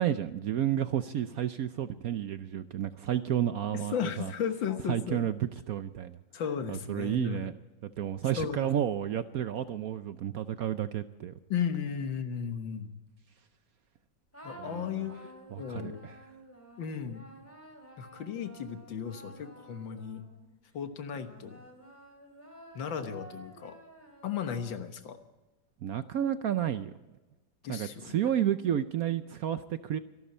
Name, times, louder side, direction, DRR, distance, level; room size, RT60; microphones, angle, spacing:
voice 1, 0.0-4.3 4.9-6.2 6.7-7.5 7.8-11.3 14.6-15.1 15.5-16.2 25.8-26.9 27.7-30.0, right 10 dB, 65° right, 11 dB, 0.9 m, -31 dB
voice 2, 3.7-5.3 6.3-7.5 8.4-8.7 11.5-13.0 14.4-15.2 15.6-16.0 16.8-17.2 18.0-20.2 20.7-21.6 22.7-23.8 24.2-25.2 27.6-28.2, left 7 dB, 80° left, 8 dB, 2.0 m, -35 dB
sound 1, 14.3-20.6 21.1-25.1, right 1 dB, 5° left, 2.7 m, -52 dB
25.5 x 12.0 x 4.3 m, 1.1 s
omnidirectional pair, 2.0 m